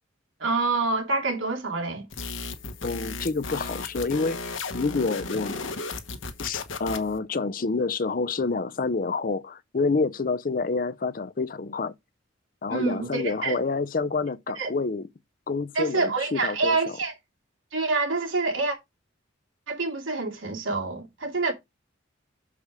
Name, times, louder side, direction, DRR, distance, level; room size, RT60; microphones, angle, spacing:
voice 1, 0.4-2.1 12.7-13.6 14.6-14.7 15.7-17.1 17.7-18.8 19.7-21.5, right 3 dB, 85° right, 2.6 m, -27 dB
sound 1, 2.1-7.2, left 3 dB, 80° left, 1.2 m, -35 dB
voice 2, 2.8-5.6 6.4-11.9 12.6-15.1 15.5-17.0, left 4 dB, 45° left, 0.5 m, -28 dB
6.9 x 4.9 x 4.9 m
head